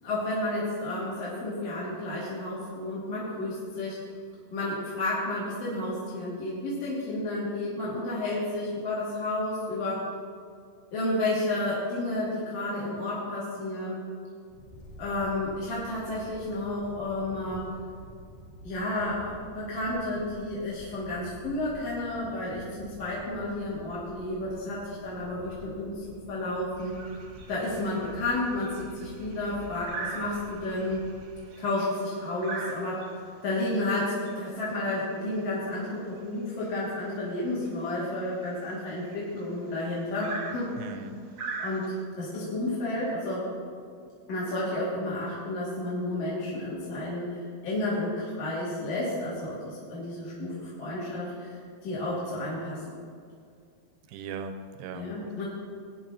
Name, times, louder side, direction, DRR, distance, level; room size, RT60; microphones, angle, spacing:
voice 1, 0.0-4.0 4.5-10.1 10.9-14.0 15.0-17.7 18.6-27.0 27.5-31.0 31.6-33.1 33.4-40.7 41.6-43.5 44.3-51.5 51.8-52.8 54.9-55.5, left 1 dB, 45° left, -9 dB, 3.1 m, -31 dB
sound 1, 14.5-31.5, equal, 75° left, 3.7 m, -49 dB
sound 2, 26.8-42.0, right 4 dB, 60° right, 1.8 m, -42 dB
voice 2, 40.8-41.2 54.1-55.4, right 5 dB, 85° right, 6 dB, 2.7 m, -39 dB
19.5 x 10.0 x 3.0 m, 2.3 s
omnidirectional pair, 4.8 m